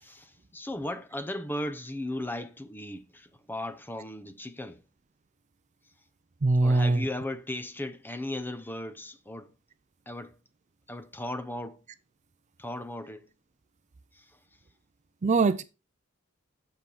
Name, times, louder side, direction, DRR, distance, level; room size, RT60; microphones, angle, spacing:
voice 1, 0.0-4.8 6.6-9.5 10.1-10.4 10.9-11.8 12.6-13.3 14.1-14.3, left 1 dB, 10° left, 0.6 m, -36 dB
voice 2, 6.4-7.1 15.2-15.6, right 3 dB, 35° right, 0.4 m, -22 dB
7.9 x 7.0 x 4.1 m
head